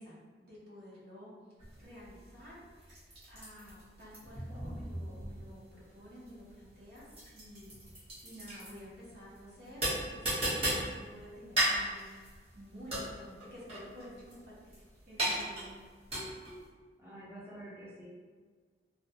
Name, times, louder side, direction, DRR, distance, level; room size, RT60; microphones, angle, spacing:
voice 1, 0.0-1.3 1.7-12.1 12.5-14.7 15.1-15.8, equal, 60° right, -7 dB, 0.8 m, -51 dB
sound 1, 1.6-16.7, right 1 dB, 35° right, 1.0 m, -37 dB
voice 2, 17.0-18.1, right 1 dB, 10° right, -8 dB, 0.5 m, -48 dB
2.3 x 2.2 x 2.7 m, 1.5 s
head